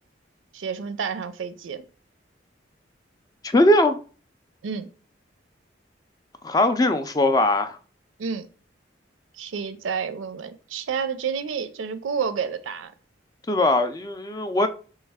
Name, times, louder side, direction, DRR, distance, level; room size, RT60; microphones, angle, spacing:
voice 1, 0.5-1.8 4.6-4.9 8.2-8.5 9.4-12.9, right 6 dB, 85° right, 0.4 m, -30 dB
voice 2, 3.4-4.0 6.4-7.8 13.5-14.7, left 1 dB, 20° left, 0.3 m, -20 dB
3.2 x 3.1 x 3.5 m
head